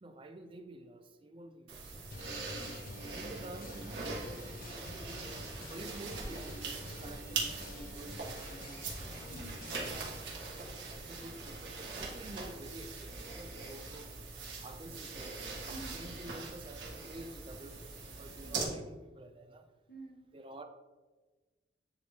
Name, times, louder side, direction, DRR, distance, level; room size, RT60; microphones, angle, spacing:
voice 1, 0.0-2.0 3.1-5.4 5.7-8.8 9.7-10.2 10.5-14.2 14.6-15.4 15.9-19.7 20.3-20.6, right 1 dB, 30° right, 6 dB, 0.5 m, -50 dB
sound 1, 1.7-18.6, right 3 dB, 85° right, 1.5 m, -42 dB
sound 2, 2.1-10.1, left 1 dB, 55° left, 0.7 m, -48 dB
voice 2, 2.5-3.1 9.3-9.6 15.7-16.0 18.4-18.9 19.9-20.3, right 2 dB, 70° left, -1 dB, 1.5 m, -51 dB
9.5 x 3.5 x 2.8 m, 1.2 s
head